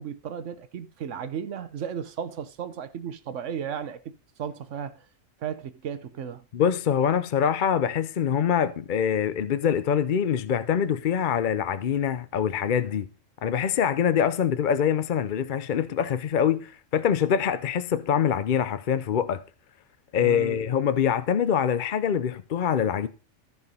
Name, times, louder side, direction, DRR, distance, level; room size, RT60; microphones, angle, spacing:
voice 1, 0.0-4.1 4.4-5.0 5.4-6.4 20.2-20.6, right 8 dB, 70° right, 1.1 m, -34 dB
voice 2, 6.5-13.1 13.4-19.4 20.1-23.1, left 8 dB, 50° left, 0.6 m, -24 dB
14.5 x 4.8 x 5.4 m
omnidirectional pair, 1.4 m